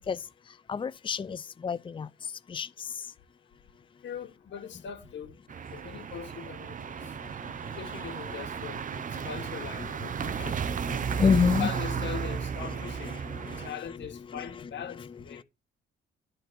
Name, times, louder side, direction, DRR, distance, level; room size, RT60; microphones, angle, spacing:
voice 1, 0.7-2.1 2.5-2.9 9.2-9.3 10.2-11.7 13.2-13.6, left 6 dB, 25° left, 0.6 m, -29 dB
voice 2, 4.0-5.3 5.7-6.8 7.8-8.8 9.3-10.5 11.5-13.1 13.6-15.4, left 7 dB, 65° left, 2.5 m, -40 dB
sound 1, 5.5-13.7, right 7 dB, 40° right, 0.7 m, -34 dB
11.0 x 4.5 x 7.6 m
cardioid pair, 90°, 20 cm